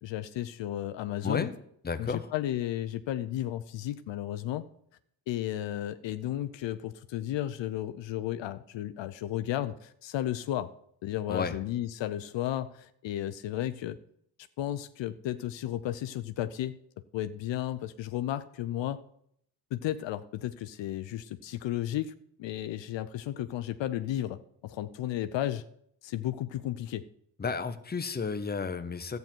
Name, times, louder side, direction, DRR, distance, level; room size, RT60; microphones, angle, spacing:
voice 1, 0.0-1.5 2.0-4.7 5.3-10.7 11.0-14.0 14.6-16.8 17.1-19.0 19.7-22.1 22.4-25.6 26.0-27.1, left 12 dB, 65° left, 12 dB, 0.6 m, -33 dB
voice 2, 1.8-2.3 11.3-11.5 27.4-29.2, left 5 dB, 20° left, 9 dB, 0.9 m, -32 dB
12.0 x 9.2 x 4.5 m, 0.70 s
cardioid pair, 85°, 47 cm